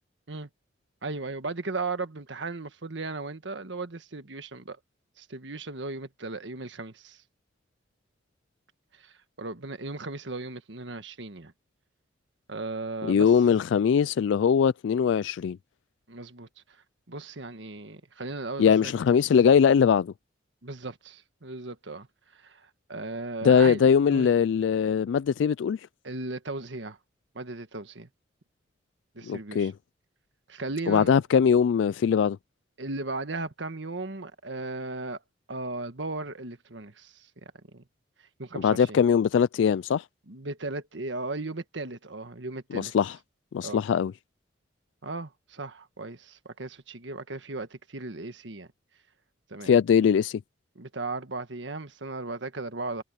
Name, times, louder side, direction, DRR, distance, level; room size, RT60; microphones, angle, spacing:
voice 1, 1.0-4.8 5.2-7.2 9.0-11.5 12.5-13.3 16.1-16.5 17.1-18.9 20.6-22.1 22.4-24.3 26.0-27.0 27.3-28.1 29.1-29.7 30.5-31.1 32.8-35.2 35.5-37.3 37.7-37.8 38.4-39.0 40.3-42.9 43.6-43.8 45.0-48.7 49.5-49.7 50.7-53.0, right 3 dB, 75° right, 1.5 m, -36 dB
voice 2, 13.0-15.6 18.6-20.1 23.4-25.9 29.3-29.7 30.9-32.4 38.5-40.0 42.7-43.2 43.5-44.1 49.6-50.4, left 7 dB, 75° left, 0.3 m, -21 dB
head